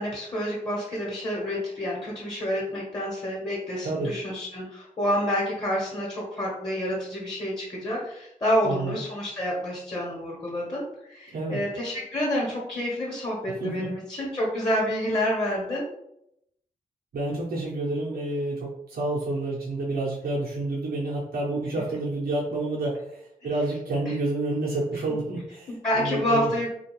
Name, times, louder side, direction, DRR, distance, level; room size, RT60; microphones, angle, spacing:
voice 1, 0.0-15.9 25.7-26.7, equal, 35° left, -5 dB, 0.9 m, -28 dB
voice 2, 8.6-9.0 11.3-11.6 13.6-13.9 17.1-26.5, right 2 dB, 90° right, -4 dB, 0.6 m, -29 dB
2.5 x 2.2 x 2.9 m, 0.78 s
cardioid pair, 70°, 15 cm